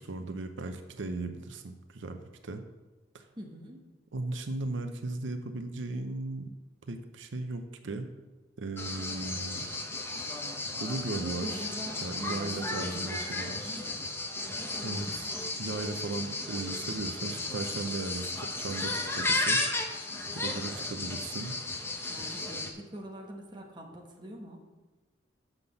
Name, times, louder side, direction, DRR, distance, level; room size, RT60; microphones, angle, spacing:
voice 1, 0.0-2.6 3.1-3.3 4.1-6.5 6.8-8.1 8.6-9.7 10.8-11.7 12.0-13.8 14.8-15.3 15.6-19.9 20.3-21.6, right 2 dB, 85° right, 7 dB, 0.6 m, -37 dB
voice 2, 3.4-3.8 11.2-14.1 20.7-21.0 22.1-24.6, equal, 25° right, 1 dB, 1.2 m, -44 dB
sound 1, 8.8-22.7, left 2 dB, 15° left, 0.7 m, -34 dB
7.0 x 5.9 x 6.8 m, 1.3 s
head